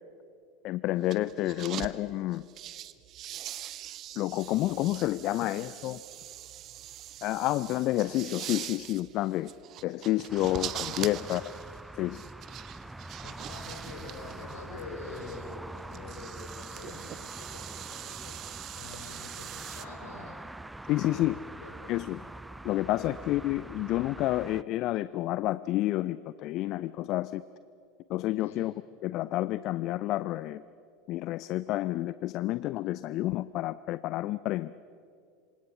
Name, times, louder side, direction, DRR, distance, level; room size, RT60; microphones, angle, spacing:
voice 1, 0.6-2.4 4.2-6.0 7.2-9.5 9.8-11.4 11.9-12.2 20.8-21.4 21.9-22.2 22.6-27.4 28.1-28.7 29.0-30.6 31.1-34.7, left 16 dB, 50° left, 16 dB, 0.5 m, -29 dB
sound 1, 1.0-1.9 2.3-19.9, right 12 dB, 45° right, 0.9 m, -42 dB
sound 2, 10.3-24.6, right 2 dB, 5° right, 0.5 m, -44 dB
voice 2, 11.0-11.3 13.2-20.3 21.0-22.0 23.0-23.1 28.4-28.7, left 3 dB, 70° left, 1 dB, 4.0 m, -46 dB
27.0 x 25.5 x 5.9 m, 2.4 s
figure-of-eight pair, 75°, 0 cm